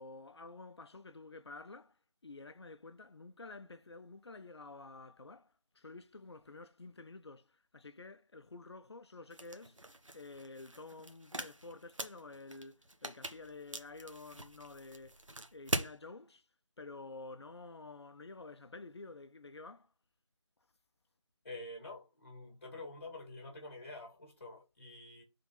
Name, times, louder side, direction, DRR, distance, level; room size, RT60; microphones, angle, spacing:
voice 1, 0.0-2.0 2.2-15.2 15.5-16.4 16.8-19.9, left 3 dB, 60° left, 0.5 m, -50 dB
sound 1, 9.3-16.0, right 1 dB, 90° right, 1.0 m, -43 dB
voice 2, 21.4-25.2, left 2 dB, 25° left, 1.5 m, -48 dB
5.1 x 3.7 x 5.4 m
figure-of-eight pair, 165°, 16 cm